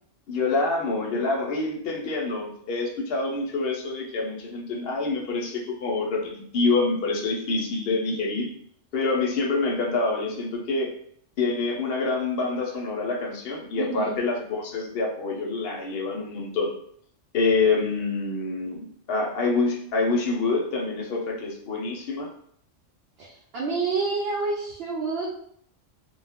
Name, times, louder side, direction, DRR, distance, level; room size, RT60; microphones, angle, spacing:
voice 1, 0.3-8.5 8.9-10.9 11.4-16.7 17.3-22.3, left 3 dB, 60° left, 0 dB, 0.7 m, -26 dB
voice 2, 13.8-14.2 23.2-25.3, right 4 dB, 60° right, -3 dB, 0.7 m, -28 dB
2.3 x 2.0 x 3.4 m, 0.66 s
omnidirectional pair, 1.3 m